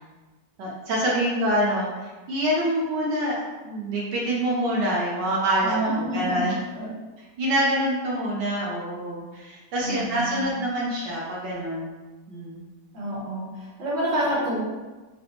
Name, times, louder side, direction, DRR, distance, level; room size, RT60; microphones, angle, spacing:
voice 1, 0.6-3.4 3.6-6.5 7.4-11.9 12.3-12.6, equal, 80° right, -5 dB, 1.4 m, -26 dB
voice 2, 5.6-6.4 6.8-6.9 9.8-10.4 12.9-14.6, right 1 dB, 50° right, -6 dB, 1.2 m, -28 dB
3.9 x 2.2 x 2.8 m, 1.2 s
omnidirectional pair, 1.8 m